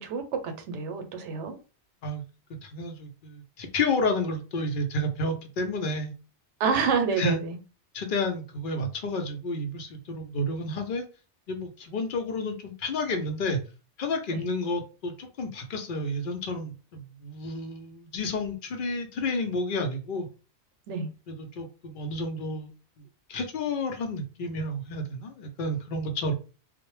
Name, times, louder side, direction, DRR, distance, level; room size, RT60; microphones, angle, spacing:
voice 1, 0.0-1.6 6.6-7.6 14.3-14.4 20.9-21.1, right 5 dB, 85° right, 0.9 m, -28 dB
voice 2, 2.6-6.1 7.2-7.4 7.9-11.0 11.5-13.6 14.0-20.3 21.3-22.7 23.3-26.3, left 2 dB, 60° left, 0.6 m, -30 dB
2.1 x 2.0 x 3.0 m
omnidirectional pair, 1.2 m